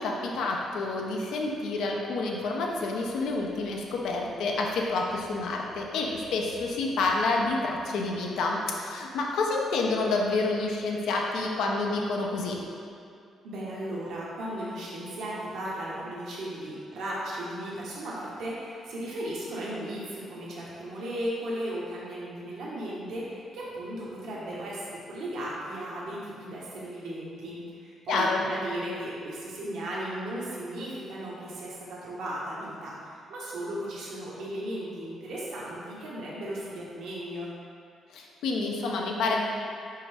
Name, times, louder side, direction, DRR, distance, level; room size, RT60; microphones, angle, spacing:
voice 1, 0.0-12.6 28.1-28.5 38.1-39.4, left 3 dB, 80° left, 0 dB, 0.8 m, -28 dB
voice 2, 13.4-37.5, right 1 dB, 75° right, -6 dB, 1.4 m, -36 dB
5.5 x 5.4 x 3.5 m, 2.4 s
cardioid pair, 90°, 0 cm